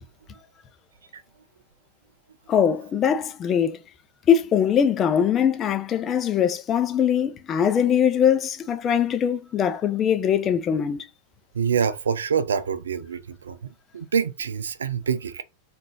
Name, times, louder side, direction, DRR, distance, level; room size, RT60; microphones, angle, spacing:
voice 1, 2.5-3.8 4.3-11.1, left 8 dB, 25° left, 0.6 m, -22 dB
voice 2, 11.5-13.6 13.9-15.4, right 7 dB, 70° right, 0.5 m, -26 dB
3.8 x 2.6 x 4.7 m
figure-of-eight pair, 90°, 0 cm